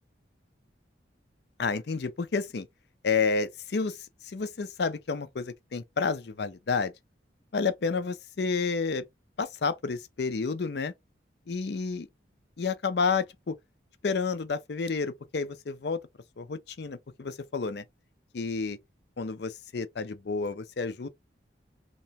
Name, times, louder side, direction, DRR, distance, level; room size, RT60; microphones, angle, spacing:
voice 1, 1.6-2.7 3.0-4.0 4.3-6.9 7.5-9.0 9.4-10.9 11.5-12.1 12.6-13.6 14.0-16.0 16.4-17.8 18.3-18.8 19.2-21.1, left 4 dB, 60° left, 0.5 m, -30 dB
2.9 x 2.2 x 2.7 m
head